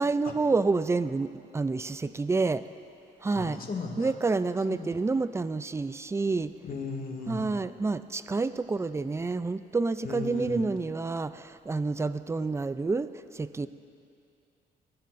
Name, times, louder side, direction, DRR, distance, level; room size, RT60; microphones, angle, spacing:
voice 1, 0.0-2.6 3.2-3.6 4.0-6.5 7.3-13.1 13.3-13.7, right 3 dB, 15° right, 13 dB, 0.4 m, -28 dB
voice 2, 3.3-4.1 4.7-4.9 6.6-7.5 10.0-10.7, left 4 dB, 45° left, 2 dB, 2.0 m, -36 dB
22.0 x 14.0 x 2.6 m, 2.5 s
cardioid pair, 90°, 20 cm